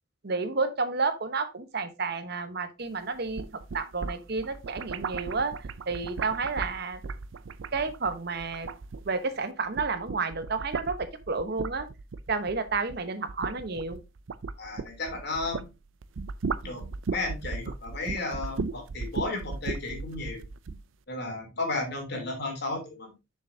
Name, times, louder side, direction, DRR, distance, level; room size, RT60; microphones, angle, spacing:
voice 1, 0.2-3.4 3.7-5.5 5.9-7.0 7.7-8.7 9.1-11.0 11.3-11.9 12.3-14.0, right 4 dB, 55° right, 1.0 m, -30 dB
sound 1, 3.1-9.4 9.7-15.7 16.0-20.8, right 4 dB, 85° right, 0.5 m, -36 dB
voice 2, 14.6-15.7 16.6-16.8 17.1-20.4 21.1-23.1, left 2 dB, 60° left, 3.1 m, -33 dB
7.1 x 6.6 x 2.7 m
head